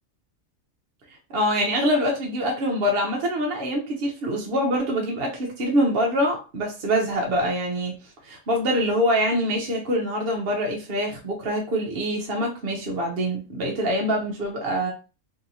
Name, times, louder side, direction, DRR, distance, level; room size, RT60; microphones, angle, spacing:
voice 1, 1.3-8.0 8.2-14.9, equal, 50° right, 0 dB, 0.8 m, -24 dB
2.9 x 2.7 x 2.6 m, 0.32 s
omnidirectional pair, 1.5 m